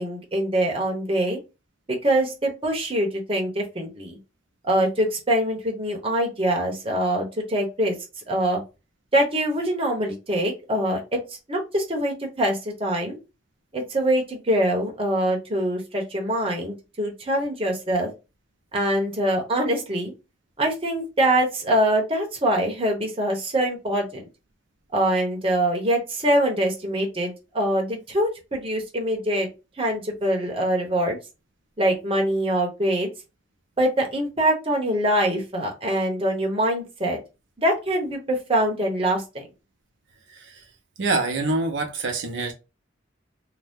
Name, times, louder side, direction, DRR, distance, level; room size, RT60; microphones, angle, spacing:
voice 1, 0.0-1.4 1.9-4.2 4.6-7.9 8.3-8.6 9.1-11.2 11.5-13.2 13.7-18.1 18.7-20.1 20.6-24.2 24.9-29.5 29.8-31.2 31.8-33.1 33.8-37.2 37.6-39.4, right 1 dB, 30° right, 0.9 m, -24 dB
voice 2, 41.0-42.5, right 3 dB, 70° right, 0.6 m, -25 dB
2.7 x 2.2 x 3.4 m
head